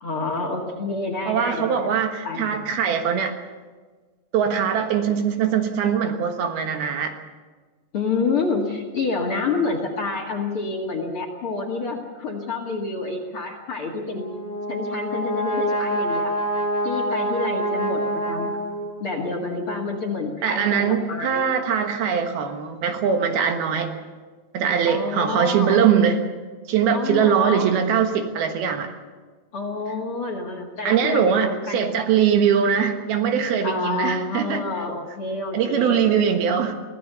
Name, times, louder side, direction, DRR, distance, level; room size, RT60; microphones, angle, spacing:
voice 1, 0.0-1.9 2.2-2.6 5.0-5.1 7.9-14.3 14.7-16.4 16.8-18.6 19.0-21.5 24.9-25.8 26.9-27.7 29.5-32.0 32.6-32.7 33.6-36.1, left 3 dB, 40° left, 3 dB, 2.2 m, -28 dB
voice 2, 1.3-3.3 4.3-7.1 20.4-23.9 24.5-26.3 26.7-28.9 30.8-34.6 35.5-36.7, right 7 dB, 70° right, 5 dB, 3.3 m, -21 dB
Brass instrument, 14.1-19.2, equal, 20° left, 2.3 m, -26 dB
24.5 x 16.5 x 6.9 m, 1.4 s
omnidirectional pair, 4.6 m